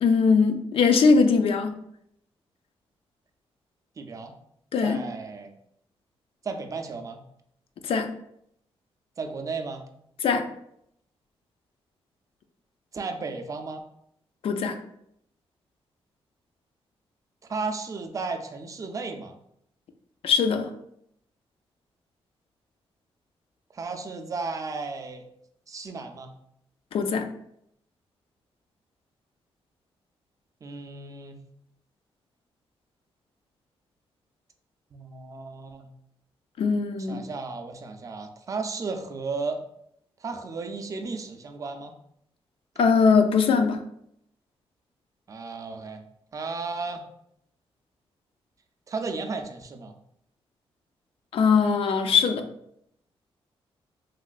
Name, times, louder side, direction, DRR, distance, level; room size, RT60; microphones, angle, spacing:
voice 1, 0.0-1.8 4.7-5.0 7.8-8.1 10.2-10.4 14.4-14.7 20.2-20.7 26.9-27.3 36.6-37.2 42.8-43.8 51.3-52.4, left 5 dB, 65° left, 7 dB, 0.4 m, -21 dB
voice 2, 4.0-4.3 4.8-5.5 6.4-7.2 9.2-9.8 12.9-13.8 17.5-19.3 23.7-25.2 25.7-26.3 30.6-31.4 34.9-35.9 37.0-39.6 40.2-41.9 45.3-46.0 46.3-47.0 48.9-50.0, right 4 dB, 35° right, 6 dB, 0.4 m, -34 dB
3.1 x 2.9 x 2.4 m, 0.74 s
cardioid pair, 110°, 10 cm